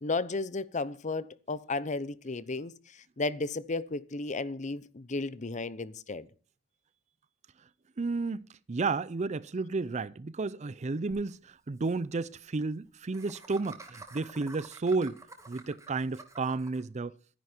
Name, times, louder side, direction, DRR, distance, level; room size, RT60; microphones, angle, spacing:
voice 1, 0.0-6.3, left 3 dB, 35° left, 0.7 m, -34 dB
voice 2, 8.0-15.2 15.5-17.1, right 3 dB, 35° right, 0.5 m, -32 dB
Laughter, 11.1-11.2 11.5-11.6 11.8-11.9 13.1-16.8, right 2 dB, 15° right, 2.1 m, -50 dB
13.0 x 10.5 x 4.4 m
head